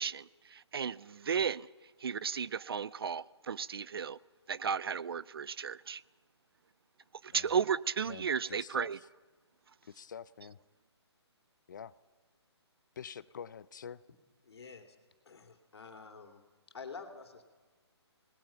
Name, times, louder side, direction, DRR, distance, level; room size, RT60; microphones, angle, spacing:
voice 1, 0.0-1.7 2.0-4.2 4.5-6.0 7.2-9.0, right 7 dB, 60° right, 0.5 m, -34 dB
voice 2, 8.1-8.9 9.8-10.6 11.7-11.9 13.0-14.0, left 7 dB, 45° left, 0.6 m, -46 dB
voice 3, 14.4-15.0 15.3-16.4 16.7-17.4, left 5 dB, 65° left, 2.9 m, -48 dB
25.5 x 19.5 x 5.8 m
hypercardioid pair, 165°, 15 cm